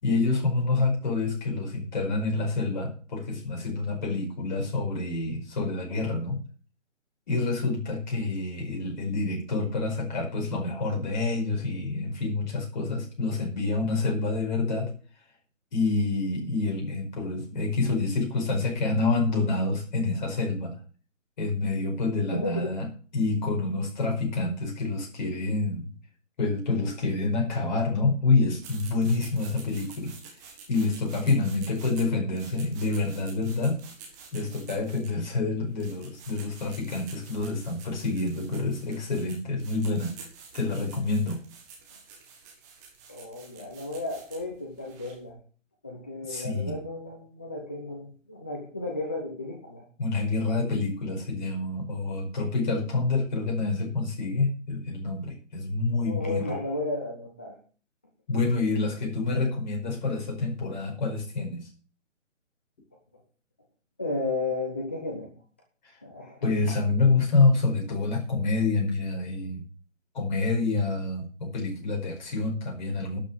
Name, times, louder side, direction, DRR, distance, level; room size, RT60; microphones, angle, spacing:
voice 1, 0.0-6.4 7.3-14.9 15.7-20.7 21.4-22.9 23.1-25.9 26.4-30.1 30.7-33.8 34.3-40.1 40.5-41.4 46.3-46.8 50.0-56.5 58.3-61.7 66.4-69.6 70.1-73.2, left 3 dB, 35° left, 0 dB, 5.1 m, -27 dB
voice 2, 22.3-22.7 43.1-45.4 45.8-49.9 52.7-52.8 56.1-57.5 64.0-65.3 66.0-66.5, left 2 dB, 10° left, 0 dB, 0.7 m, -33 dB
sound 1, 28.6-45.3, right 5 dB, 15° right, 1.6 m, -49 dB
12.0 x 5.9 x 7.7 m, 0.40 s
figure-of-eight pair, 160°, 39 cm